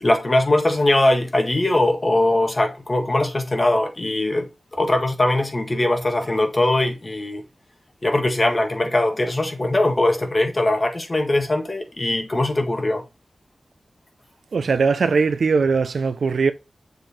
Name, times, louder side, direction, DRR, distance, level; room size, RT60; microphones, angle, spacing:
voice 1, 0.0-7.4 8.0-13.0, left 1 dB, 30° left, 1.6 m, -21 dB
voice 2, 14.5-16.5, right 5 dB, 85° right, 0.7 m, -20 dB
6.9 x 4.0 x 4.1 m
wide cardioid pair, 85°, 0 cm